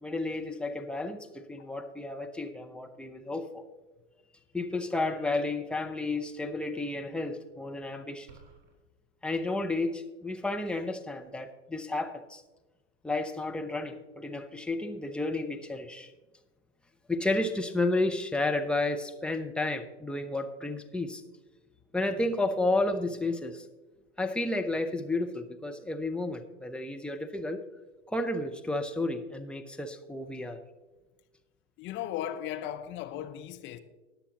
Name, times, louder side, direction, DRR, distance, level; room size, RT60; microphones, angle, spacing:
voice 1, 0.0-3.7 4.5-8.3 9.2-12.4 13.0-16.1 17.1-21.2 21.9-23.7 24.2-27.6 28.1-30.6, left 2 dB, 5° left, 0.6 m, -32 dB
sound 1, 8.3-8.8, right 4 dB, 40° right, 3.5 m, -54 dB
voice 2, 31.8-33.8, left 11 dB, 30° left, 0.8 m, -37 dB
20.5 x 7.0 x 2.9 m
figure-of-eight pair, 95°, 37 cm